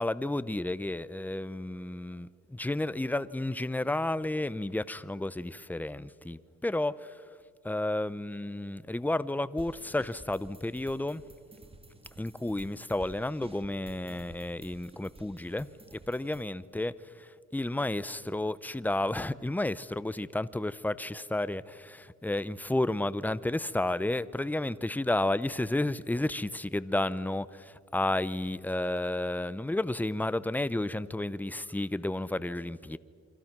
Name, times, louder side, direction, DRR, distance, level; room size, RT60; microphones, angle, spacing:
voice 1, 0.0-7.2 7.6-11.2 12.2-15.7 16.1-33.0, left 1 dB, 5° left, 16 dB, 0.7 m, -32 dB
sound 1, 9.6-16.4, right 2 dB, 20° right, 2.2 m, -52 dB
29.0 x 24.5 x 6.1 m, 2.1 s
cardioid pair, 90°, 30 cm